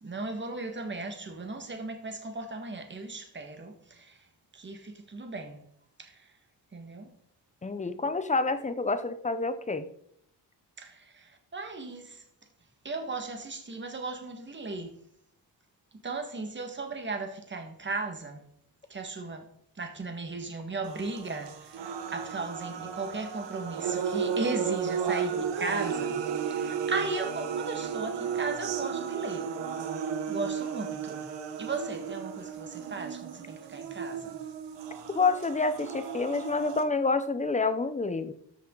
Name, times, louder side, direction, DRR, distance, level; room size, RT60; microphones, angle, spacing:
voice 1, 0.0-4.2 4.5-5.6 6.0-6.3 6.7-7.1 10.8-12.2 12.8-14.9 16.0-18.4 18.9-19.4 19.8-29.5 30.3-31.3 31.6-34.4, right 3 dB, 25° right, 1.7 m, -36 dB
voice 2, 7.6-9.9 35.1-38.3, left 3 dB, 15° left, 0.7 m, -28 dB
sound 1, 20.8-36.8, right 7 dB, 85° right, 1.3 m, -34 dB
13.5 x 7.2 x 3.9 m
wide cardioid pair, 150°, 42 cm